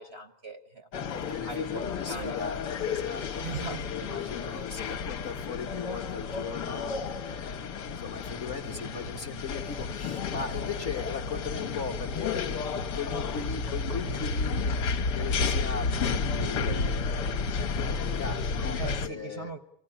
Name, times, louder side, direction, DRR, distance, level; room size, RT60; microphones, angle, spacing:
voice 1, 0.0-2.4 3.4-4.2 18.8-19.6, right 3 dB, 40° right, 6 dB, 1.0 m, -40 dB
sound 1, 0.9-19.1, left 4 dB, 60° left, 1.6 m, -32 dB
voice 2, 1.1-7.7 8.0-12.6 12.9-17.4 17.7-19.5, left 5 dB, 40° left, 3 dB, 1.3 m, -39 dB
25.0 x 16.5 x 9.9 m, 0.79 s
omnidirectional pair, 2.2 m